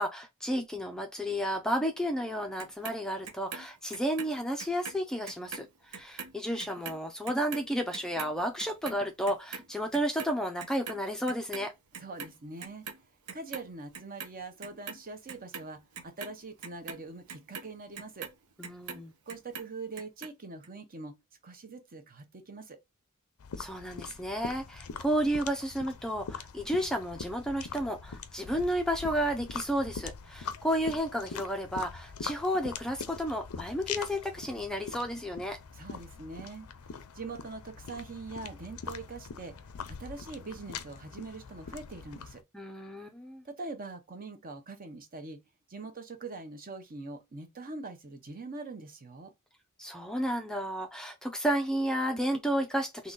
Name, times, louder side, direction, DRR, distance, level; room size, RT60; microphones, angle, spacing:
voice 1, 0.0-11.7 18.6-19.1 23.6-35.6 42.5-43.4 49.8-53.1, equal, 5° left, 0.5 m, -32 dB
Clock, 2.6-5.0 5.3-11.7 11.9-13.0 13.3-14.3 14.6-19.0 19.3-20.3 20.6-20.7, right 6 dB, 80° right, 0.7 m, -43 dB
voice 2, 12.0-12.8 13.3-18.3 19.3-21.2 21.4-22.8 35.7-36.7 37.1-42.4 43.4-45.4 45.7-49.3, right 3 dB, 40° right, 0.8 m, -43 dB
sound 1, 23.4-42.4, left 6 dB, 70° left, 0.5 m, -43 dB
3.9 x 3.0 x 3.9 m
head